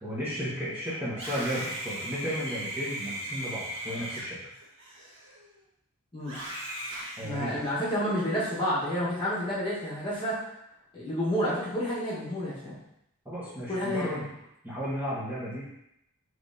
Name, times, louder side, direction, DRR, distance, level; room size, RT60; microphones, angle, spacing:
voice 1, 0.0-4.4 7.2-7.5 13.2-14.2 14.6-15.8, equal, 10° right, -9 dB, 1.1 m, -34 dB
Screaming, 1.2-5.6 6.2-7.9, right 1 dB, 55° right, 1.5 m, -38 dB
voice 2, 7.2-10.4 10.9-12.8 13.7-14.2, equal, 25° left, -8 dB, 1.4 m, -30 dB
5.8 x 3.2 x 2.7 m, 0.80 s
head